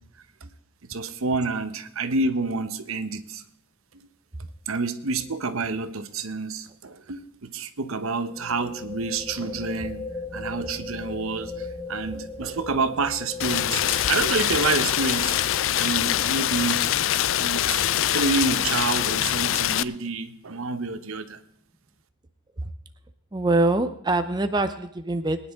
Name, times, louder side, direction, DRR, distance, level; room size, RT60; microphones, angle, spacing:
voice 1, 0.9-3.4 4.7-10.0 10.3-15.4 15.8-16.8 17.4-17.9 18.1-21.4, right 3 dB, 70° right, 11 dB, 0.9 m, -28 dB
sound 1, 5.2-5.5 5.7-5.8 8.3-19.7, left 3 dB, 10° left, 1.1 m, -40 dB
Rain, 13.4-19.8, left 12 dB, 65° left, 0.4 m, -24 dB
voice 2, 23.3-25.4, right 2 dB, 20° right, 9 dB, 0.5 m, -23 dB
21.5 x 10.0 x 3.6 m, 0.72 s
head